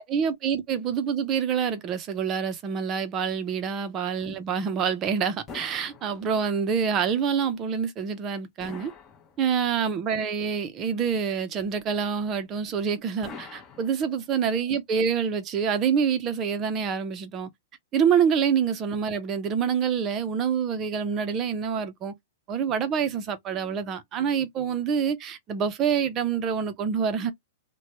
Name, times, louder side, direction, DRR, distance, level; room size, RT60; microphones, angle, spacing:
voice 1, 0.1-8.9 9.4-17.5 17.9-22.1 22.5-27.3, right 7 dB, 25° right, 0.6 m, -26 dB
sound 1, 5.5-6.7 8.6-9.8 13.2-14.5, left 5 dB, 15° left, 0.8 m, -45 dB
3.0 x 2.2 x 2.9 m
hypercardioid pair, 160°, 0 cm